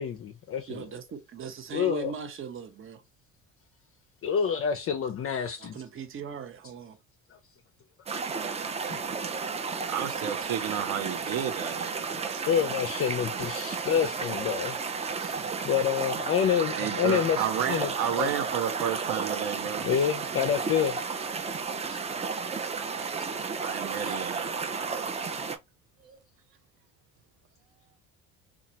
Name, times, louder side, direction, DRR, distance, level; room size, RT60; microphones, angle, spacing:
voice 1, 0.0-0.9 1.7-2.1 4.2-5.8 8.9-9.0 12.5-14.8 15.2-15.3 15.6-17.4 17.7-17.9 18.2-18.3 19.8-21.0 21.9-22.0, left 8 dB, 40° left, 0.5 m, -27 dB
voice 2, 0.7-3.0 5.6-7.0, right 6 dB, 35° right, 0.7 m, -39 dB
sound 1, 8.1-25.6, right 5 dB, 20° right, 0.3 m, -33 dB
voice 3, 9.8-12.4 16.7-19.9 23.6-24.5 26.0-26.2, right 10 dB, 75° right, 0.6 m, -32 dB
2.8 x 2.4 x 2.7 m
supercardioid pair, 85°, 35 cm